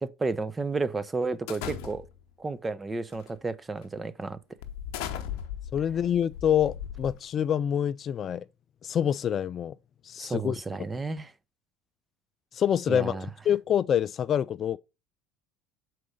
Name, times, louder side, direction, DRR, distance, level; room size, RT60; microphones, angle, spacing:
voice 1, 0.0-2.1 2.4-4.4 10.2-11.3 12.9-13.3, right 3 dB, 20° right, 0.8 m, -32 dB
sound 1, 1.5-2.3 3.1-3.4 3.8-3.9 4.6-7.5, left 9 dB, 70° left, 0.9 m, -38 dB
voice 2, 5.7-8.5 8.8-9.8 10.0-10.6 10.9-11.0 12.5-14.8, left 9 dB, 45° left, 0.3 m, -26 dB
6.4 x 4.7 x 5.5 m
hypercardioid pair, 70°, 0 cm